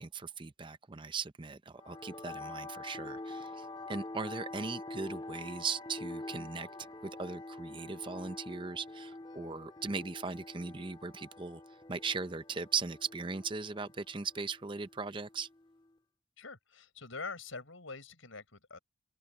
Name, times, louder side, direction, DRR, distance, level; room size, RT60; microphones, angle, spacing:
voice 1, 0.0-6.7 7.0-11.6 11.9-15.5, right 4 dB, 25° right, 0.6 m, -38 dB
sound 1, 1.8-15.9, left 2 dB, 25° left, 1.6 m, -46 dB
voice 2, 16.4-18.8, left 4 dB, 75° left, 5.1 m, -44 dB
open air
head